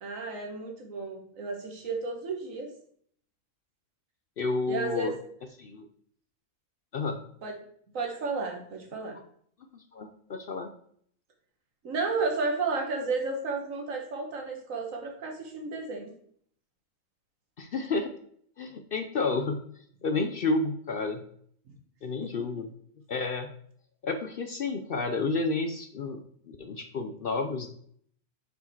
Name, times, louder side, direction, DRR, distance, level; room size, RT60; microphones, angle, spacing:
voice 1, 0.0-2.7 4.7-5.1 7.4-7.6 7.9-9.2 11.8-16.1, right 3 dB, 55° right, 2 dB, 1.7 m, -32 dB
voice 2, 4.4-5.1 5.6-5.9 6.9-7.2 9.7-10.7 17.6-18.1 18.6-19.6 20.0-21.2 22.0-22.7 23.1-23.5 24.0-26.2 26.5-27.7, left 3 dB, 70° left, 7 dB, 0.5 m, -30 dB
6.6 x 4.7 x 4.5 m, 0.62 s
omnidirectional pair, 1.7 m